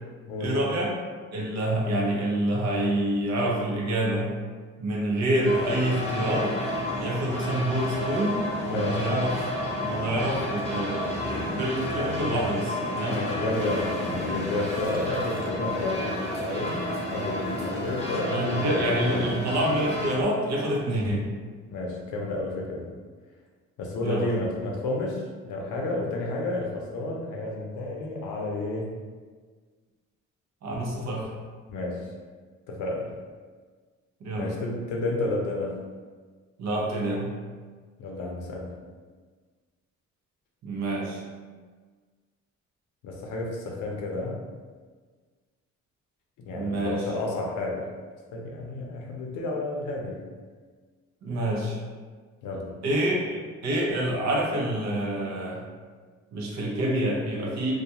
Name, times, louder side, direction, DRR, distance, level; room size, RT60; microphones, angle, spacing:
voice 1, 0.4-1.0 1.3-4.3 4.8-6.6 7.0-9.4 9.8-13.2 18.3-21.4 24.0-24.3 30.6-31.3 34.2-34.5 36.6-37.3 40.6-41.2 46.5-47.1 51.2-51.8 52.8-55.6 56.3-57.7, right 1 dB, 60° right, -2 dB, 0.7 m, -27 dB
sound 1, 5.4-20.1, left 1 dB, 20° left, 0.7 m, -31 dB
voice 2, 8.7-9.1 13.1-19.3 21.7-22.9 23.8-28.9 31.7-32.1 32.7-33.1 34.3-35.8 38.0-38.7 43.0-44.4 46.4-47.9 48.3-50.3 52.4-52.7, left 2 dB, 85° left, -1 dB, 0.6 m, -31 dB
sound 2, 13.5-20.2, right 1 dB, 30° right, 0.8 m, -42 dB
2.4 x 2.3 x 2.8 m, 1.5 s
cardioid pair, 90°, 30 cm